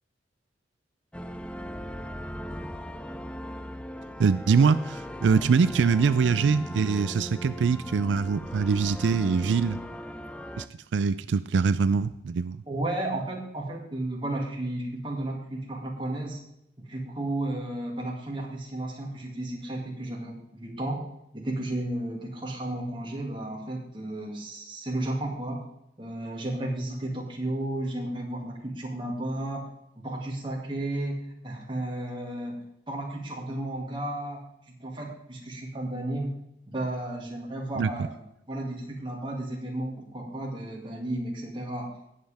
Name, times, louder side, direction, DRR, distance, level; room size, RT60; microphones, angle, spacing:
sound 1, 1.1-10.7, equal, 5° left, 0.4 m, -39 dB
voice 1, 4.2-9.8 10.6-10.7 10.9-12.6 37.8-37.9, right 5 dB, 90° right, 14 dB, 0.4 m, -23 dB
voice 2, 12.7-16.4 16.8-21.1 21.3-25.7 26.0-29.7 30.0-36.3 36.7-38.2 38.5-41.9, right 1 dB, 25° right, -1 dB, 2.3 m, -33 dB
18.0 x 7.5 x 3.5 m, 0.79 s
head